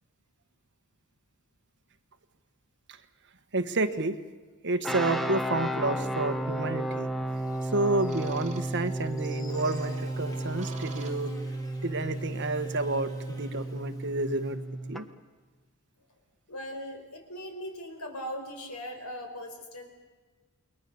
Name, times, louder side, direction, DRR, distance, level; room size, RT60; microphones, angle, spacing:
voice 1, 3.5-4.2 4.6-7.1 7.7-11.3 11.8-14.6 14.9-15.0, right 2 dB, 55° right, 9 dB, 1.4 m, -30 dB
sound 1, 4.8-15.0, right 1 dB, ahead, 1.2 m, -33 dB
sound 2, 6.6-7.1 8.1-9.1 9.6-11.6, right 3 dB, 35° right, 3.1 m, -48 dB
Buzz, 7.3-14.5, right 1 dB, 15° left, 3.7 m, -52 dB
voice 2, 16.5-19.9, equal, 90° left, 5 dB, 4.7 m, -39 dB
29.0 x 22.0 x 7.0 m, 1.4 s
head